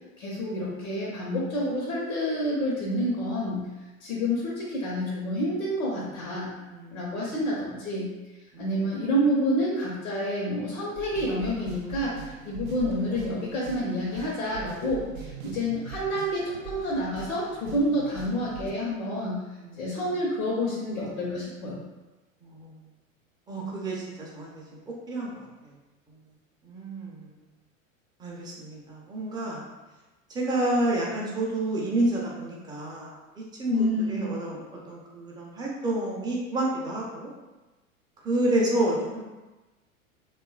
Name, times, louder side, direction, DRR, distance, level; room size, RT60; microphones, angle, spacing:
voice 1, 0.2-3.7 4.0-6.5 6.9-8.1 8.6-19.4 19.8-21.8 33.7-34.3, equal, 80° left, -5 dB, 0.8 m, -28 dB
voice 2, 6.7-7.3 8.5-9.0 19.6-20.0 22.4-22.7 23.5-24.5 25.1-25.7 26.6-27.3 28.2-29.6 30.3-34.6 34.9-37.3 38.2-39.2, right 1 dB, 10° right, -4 dB, 0.4 m, -29 dB
sound 1, 11.0-18.7, right 8 dB, 80° right, 0.5 m, -43 dB
2.6 x 2.3 x 2.3 m, 1.1 s
hypercardioid pair, 90°, 41 cm